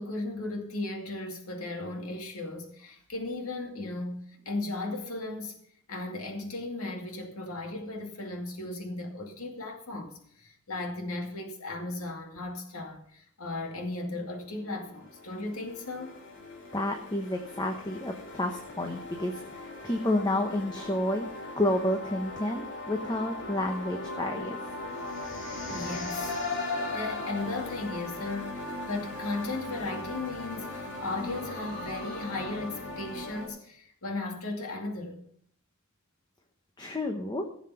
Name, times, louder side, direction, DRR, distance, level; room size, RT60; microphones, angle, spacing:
voice 1, 0.0-5.6 5.9-16.2 25.7-26.3 26.9-35.2, left 2 dB, 90° left, 2.5 m, -36 dB
sound 1, 14.2-33.5, left 2 dB, 55° left, 3.0 m, -38 dB
voice 2, 16.7-21.3 21.6-24.8 36.8-37.5, left 1 dB, 20° left, 0.9 m, -30 dB
16.0 x 7.4 x 5.7 m
head